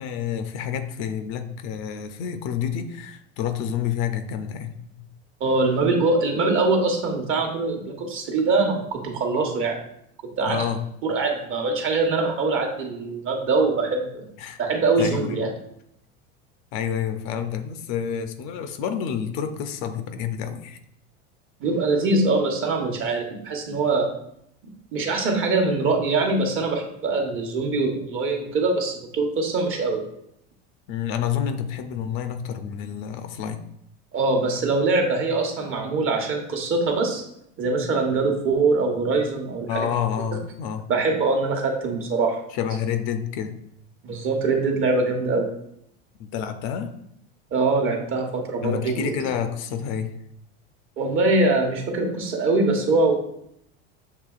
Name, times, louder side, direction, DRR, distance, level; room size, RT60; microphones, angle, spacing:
voice 1, 0.0-5.0 9.3-9.4 10.4-10.8 14.4-14.6 15.0-15.4 16.7-20.8 30.9-33.6 39.7-40.9 42.5-43.6 46.2-47.0 48.6-50.1, left 8 dB, 60° left, 8 dB, 0.5 m, -29 dB
voice 2, 5.4-9.8 10.4-10.6 11.0-14.3 14.6-15.5 21.6-24.1 24.9-30.0 34.1-37.2 37.6-39.9 40.9-42.4 44.0-45.5 47.5-49.1 51.0-53.1, right 3 dB, 40° right, 2 dB, 1.0 m, -23 dB
6.7 x 2.8 x 2.4 m, 0.74 s
supercardioid pair, 110°, 32 cm